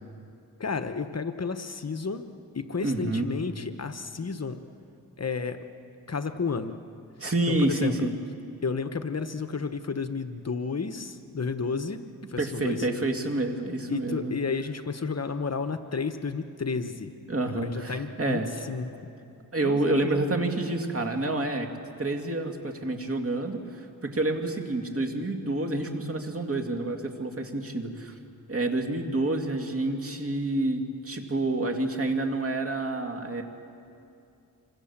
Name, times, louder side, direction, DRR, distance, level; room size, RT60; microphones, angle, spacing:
voice 1, 0.6-2.2 2.5-4.6 5.2-5.6 6.1-6.7 7.5-8.1 8.6-12.0 12.3-12.9 13.9-17.1 17.5-18.9 19.6-20.2, left 5 dB, 45° left, 9 dB, 1.1 m, -32 dB
voice 2, 2.8-3.3 7.2-8.1 12.4-14.3 17.3-18.5 19.5-21.7 22.0-28.1 28.5-33.4, right 2 dB, 40° right, 4 dB, 2.7 m, -28 dB
25.5 x 25.5 x 7.3 m, 2.5 s
wide cardioid pair, 75°, 35 cm